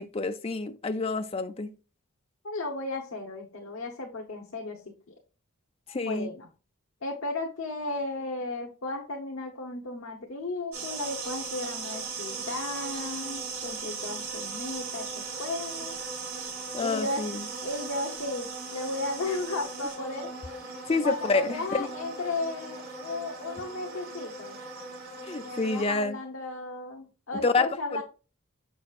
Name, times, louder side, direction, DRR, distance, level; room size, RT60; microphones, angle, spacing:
voice 1, 0.0-1.7 5.9-6.3 16.7-17.4 20.9-21.9 25.3-26.2 27.4-28.0, left 3 dB, 25° left, 0.4 m, -28 dB
voice 2, 2.4-4.8 5.9-6.5 7.0-16.0 16.8-17.2 17.6-20.3 21.0-24.6 25.4-28.0, left 2 dB, 70° left, 0.9 m, -35 dB
sound 1, 10.7-25.8, right 4 dB, 85° right, 3.4 m, -38 dB
6.5 x 6.1 x 2.4 m
head